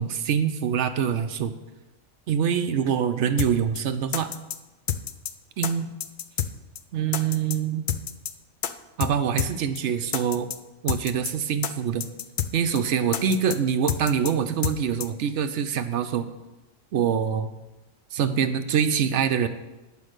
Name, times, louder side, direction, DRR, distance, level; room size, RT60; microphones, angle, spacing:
voice 1, 0.0-1.5 2.3-4.3 5.6-5.9 6.9-7.8 9.0-10.5 10.8-12.1 12.5-16.3 16.9-17.5 18.1-19.5, right 7 dB, 70° right, 9 dB, 0.9 m, -25 dB
sound 1, 3.4-3.5 3.8-3.9 4.1-4.6 4.9-5.3 5.6-5.7 6.0-6.5 6.8-6.9 7.1-7.6 7.9-8.3 8.6-8.7 9.0-9.1 9.4-9.5 9.8-9.9 10.1-10.6 10.9-11.3 11.6-11.7 12.0-12.5 12.8-12.9 13.1-13.6 13.9-14.3 14.6-14.8 15.0-15.1, left 9 dB, 65° left, 0.5 m, -28 dB
9.0 x 5.3 x 6.4 m, 1.1 s
omnidirectional pair, 1.4 m